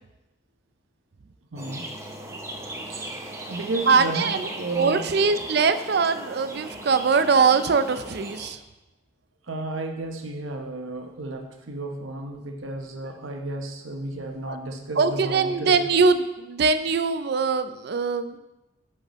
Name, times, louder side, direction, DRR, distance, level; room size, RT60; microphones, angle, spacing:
voice 1, 1.5-1.8 2.9-5.0 9.5-15.8, right 2 dB, 80° right, 4 dB, 1.0 m, -33 dB
sound 1, 1.6-8.5, right 1 dB, 15° right, 0.7 m, -37 dB
voice 2, 3.9-8.6 14.5-14.6 15.0-18.4, right 5 dB, 55° right, 11 dB, 0.4 m, -22 dB
10.5 x 5.8 x 3.1 m, 0.98 s
head